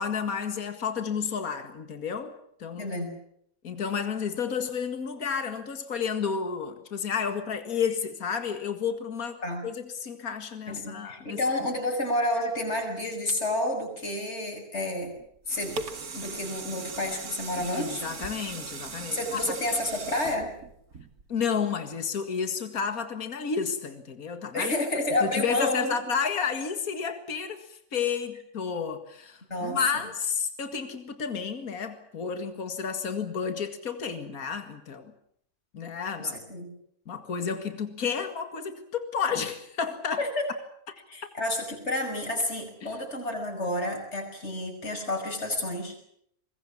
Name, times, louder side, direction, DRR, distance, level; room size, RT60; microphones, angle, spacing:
voice 1, 0.0-2.3 2.6-2.9 3.6-11.4 17.6-19.5 21.3-24.8 25.2-35.1 35.7-36.4 37.1-40.2 42.8-42.9, left 6 dB, 70° left, 8 dB, 2.4 m, -31 dB
voice 2, 2.8-3.1 9.4-9.6 10.7-15.1 15.5-15.8 16.1-18.0 19.1-20.5 24.5-25.9 29.5-29.8 36.2-36.7 40.2-40.5 41.1-46.0, left 1 dB, 45° left, 2 dB, 6.4 m, -30 dB
sound 1, 15.2-21.5 22.0-22.1, right 4 dB, 75° right, 2.3 m, -39 dB
25.5 x 22.0 x 7.3 m, 0.69 s
omnidirectional pair, 1.6 m